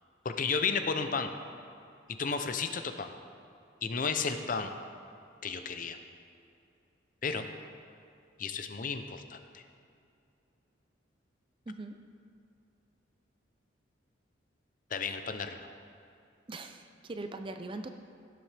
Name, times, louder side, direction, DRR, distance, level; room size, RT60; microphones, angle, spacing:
voice 1, 0.2-1.3 2.2-3.1 3.8-4.7 5.4-6.0 7.2-7.5 8.4-9.6 14.9-15.7, left 5 dB, 45° left, 8 dB, 0.6 m, -33 dB
voice 2, 11.7-12.0 16.5-17.9, right 2 dB, 25° right, 7 dB, 0.4 m, -41 dB
16.5 x 7.6 x 3.4 m, 2.6 s
head